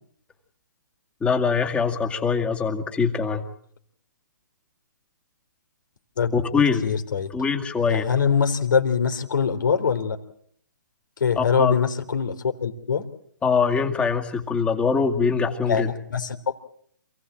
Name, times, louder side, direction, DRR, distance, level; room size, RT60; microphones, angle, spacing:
voice 1, 1.2-3.4 6.3-6.8 7.3-8.0 11.4-11.7 13.4-15.9, left 5 dB, 10° left, 4 dB, 2.2 m, -23 dB
voice 2, 6.8-7.3 7.9-10.2 11.2-13.0 15.7-16.6, left 6 dB, 75° left, 6 dB, 3.3 m, -23 dB
28.0 x 17.5 x 7.6 m, 0.65 s
hypercardioid pair, 140°, 11 cm